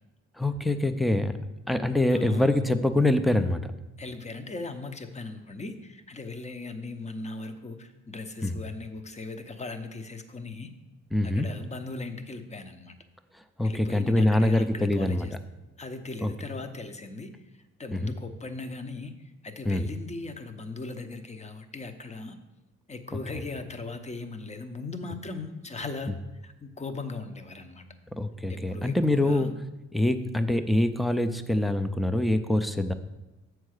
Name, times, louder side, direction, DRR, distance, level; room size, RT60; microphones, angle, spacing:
voice 1, 0.4-1.4 1.7-3.7 8.4-8.6 11.1-11.5 13.6-15.4 16.2-16.3 17.9-18.1 19.6-19.8 23.1-23.2 28.2-29.5 29.9-32.9, left 1 dB, ahead, 9 dB, 0.5 m, -24 dB
voice 2, 2.1-2.6 4.0-10.7 11.2-13.0 13.6-15.3 15.8-17.3 17.8-22.4 22.9-26.2 26.4-27.8 28.5-29.5, left 3 dB, 25° left, 8 dB, 0.8 m, -39 dB
7.3 x 4.6 x 6.5 m, 1.0 s
cardioid pair, 90°, 30 cm